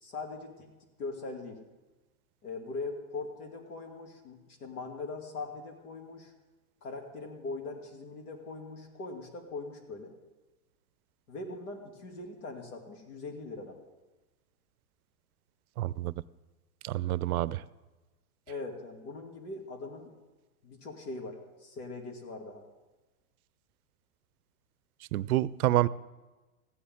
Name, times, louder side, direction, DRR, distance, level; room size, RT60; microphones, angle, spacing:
voice 1, 0.0-1.6 2.4-6.3 6.8-10.1 11.3-13.8 18.5-20.1 20.6-22.6, left 3 dB, 85° left, 2 dB, 2.5 m, -41 dB
voice 2, 15.8-16.1 16.8-17.6 25.1-25.9, right 15 dB, 80° right, 19 dB, 0.5 m, -28 dB
15.0 x 9.8 x 3.7 m, 1.2 s
supercardioid pair, 165°, 43 cm